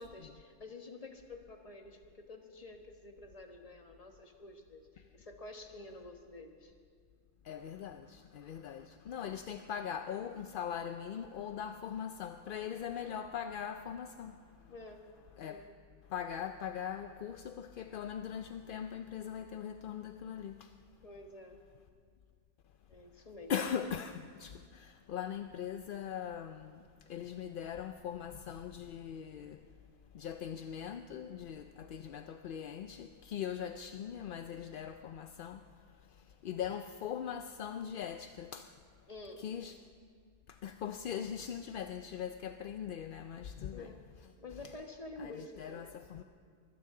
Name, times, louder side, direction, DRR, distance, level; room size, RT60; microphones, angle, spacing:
voice 1, 0.0-6.7 14.7-15.1 15.5-15.7 21.0-21.6 22.9-23.5 39.1-39.4 43.7-44.1 44.4-46.0, left 2 dB, 30° left, 4 dB, 1.4 m, -49 dB
voice 2, 7.4-14.4 15.4-15.7 16.1-20.7 23.5-26.8 27.1-29.6 30.1-35.6 36.4-38.7 39.4-39.8 40.5-43.9 45.2-46.2, left 8 dB, 60° left, 8 dB, 0.6 m, -41 dB
23.5 x 16.5 x 3.8 m, 2.1 s
omnidirectional pair, 1.2 m